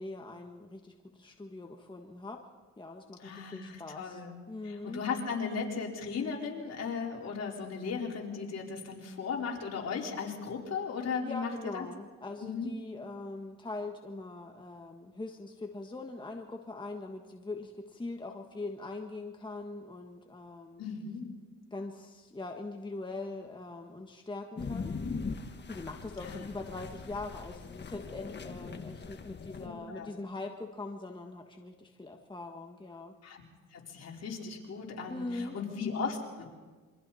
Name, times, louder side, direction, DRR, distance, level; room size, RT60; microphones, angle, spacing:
voice 1, 0.0-2.4 2.8-4.2 4.5-5.0 11.2-20.8 21.7-25.0 25.7-33.1 35.1-35.6, left 2 dB, 15° left, 3 dB, 1.6 m, -42 dB
voice 2, 3.2-4.4 4.6-11.9 12.4-12.7 20.8-21.3 26.2-26.4 29.6-30.1 33.2-33.4 33.7-36.5, left 5 dB, 55° left, -2 dB, 4.6 m, -36 dB
sound 1, 24.6-29.7, left 4 dB, 35° left, 1.6 m, -40 dB
28.0 x 24.0 x 4.3 m, 1.4 s
cardioid pair, 90°, 30 cm